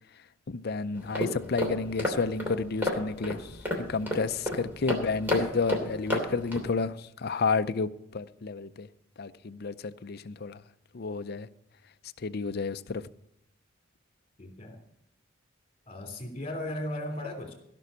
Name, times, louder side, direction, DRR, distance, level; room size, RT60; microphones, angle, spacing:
voice 1, 0.5-8.9 9.2-10.6 10.9-11.5 12.2-13.1, left 4 dB, 55° left, 0.5 m, -31 dB
sound 1, 0.9-6.7, left 1 dB, 10° right, 2.9 m, -32 dB
voice 2, 14.4-14.8 15.9-17.5, left 1 dB, 30° left, 3.1 m, -36 dB
16.0 x 6.1 x 8.2 m
head